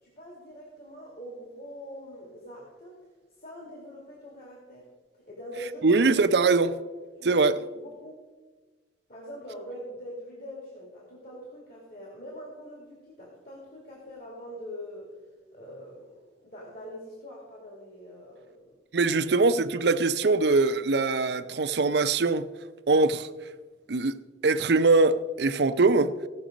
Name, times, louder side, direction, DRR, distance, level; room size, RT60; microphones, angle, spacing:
voice 1, 0.0-3.0 3.4-4.9 5.1-6.1 6.4-6.8 7.2-8.2 9.1-15.1 15.5-18.7 19.0-19.3, equal, 50° left, 2.3 m, -43 dB
voice 2, 5.8-6.7 7.2-7.6 18.9-22.5 22.9-23.3 23.9-26.1, right 3 dB, 60° right, 0.5 m, -22 dB
16.5 x 6.1 x 5.0 m
head